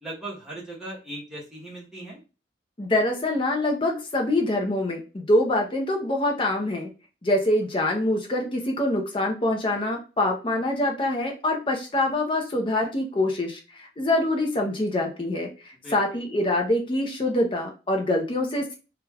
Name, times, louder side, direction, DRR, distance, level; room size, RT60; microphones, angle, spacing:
voice 1, 0.0-2.2 15.8-16.0, right 1 dB, 5° right, -5 dB, 0.9 m, -38 dB
voice 2, 2.8-6.9 7.2-18.7, left 1 dB, 30° left, 2 dB, 0.5 m, -25 dB
2.4 x 2.2 x 3.2 m, 0.32 s
head